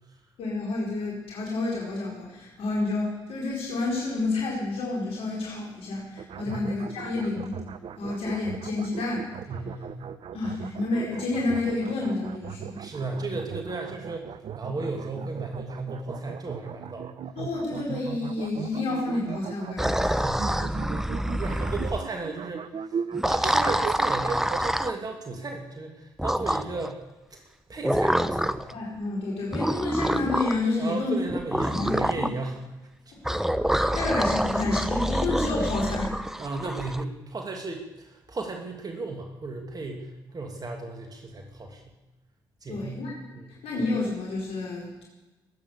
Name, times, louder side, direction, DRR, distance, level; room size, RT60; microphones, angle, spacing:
voice 1, 0.4-7.6 8.0-9.3 10.3-12.8 17.3-20.0 20.4-20.6 28.7-31.2 31.7-32.3 33.1-36.1 42.7-43.1 43.6-45.0, left 2 dB, 65° left, -4 dB, 4.8 m, -29 dB
sound 1, 6.2-24.7, right 7 dB, 55° right, 1.0 m, -37 dB
voice 2, 9.5-9.9 12.8-17.2 19.8-20.4 21.4-23.0 23.3-27.0 27.3-27.4 27.7-28.7 30.8-32.6 33.1-33.2 36.4-41.9 42.6-43.0 43.3-43.5, right 3 dB, 35° right, 2 dB, 2.7 m, -35 dB
sound 2, 19.8-22.1 23.1-25.0 26.2-26.9 27.8-28.7 29.5-30.6 31.3-32.3 33.2-37.0, equal, 5° right, 1.0 m, -26 dB
21.5 x 9.6 x 6.9 m, 1.1 s
hypercardioid pair, 50°, 11 cm